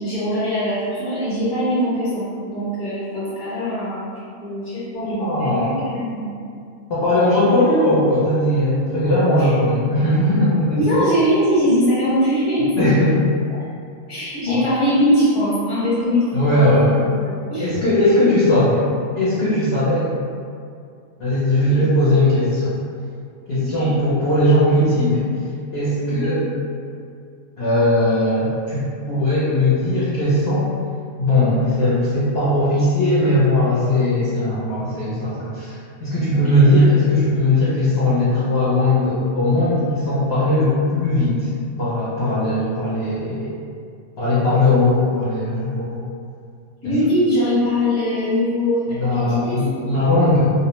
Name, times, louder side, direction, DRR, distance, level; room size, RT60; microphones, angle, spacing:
voice 1, 0.0-4.1 4.4-6.3 7.4-7.6 9.4-9.5 10.8-12.7 14.1-16.3 16.5-16.7 17.0-17.7 21.7-21.8 23.5-23.9 26.1-26.3 36.3-36.7 46.8-48.8 49.1-49.6, equal, 25° left, -11 dB, 1.0 m, -21 dB
voice 2, 4.9-5.8 6.9-10.9 12.8-13.3 14.5-14.6 16.3-17.0 17.6-18.9 19.2-20.1 21.2-22.7 23.5-25.3 25.7-26.5 27.6-30.7 31.2-41.5 41.8-43.5 44.2-45.9 46.8-46.9 48.9-50.5, left 1 dB, 60° left, -10 dB, 0.7 m, -18 dB
2.4 x 2.1 x 2.9 m, 2.4 s
omnidirectional pair, 1.5 m